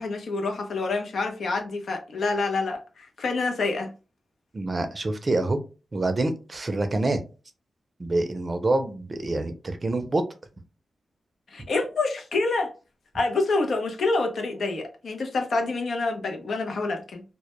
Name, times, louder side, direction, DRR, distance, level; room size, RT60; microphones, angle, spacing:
voice 1, 0.0-3.9 11.5-12.7 13.1-17.2, left 3 dB, 75° left, 0.5 m, -27 dB
voice 2, 4.5-5.6 5.9-7.2 8.0-10.2, right 2 dB, 40° right, 0.5 m, -26 dB
2.1 x 2.1 x 2.9 m
cardioid pair, 75°, 0 cm